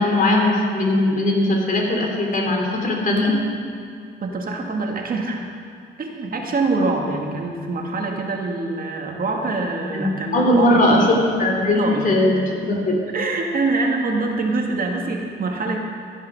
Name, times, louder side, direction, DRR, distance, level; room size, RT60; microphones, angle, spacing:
voice 1, 0.0-3.3 9.9-10.0 10.3-13.0, left 1 dB, 45° left, 0 dB, 3.2 m, -19 dB
voice 2, 4.2-5.4 6.0-11.1 11.8-12.1 13.1-15.8, right 3 dB, 45° right, 1 dB, 1.7 m, -24 dB
14.5 x 7.9 x 6.3 m, 2.3 s
cardioid pair, 90°, 20 cm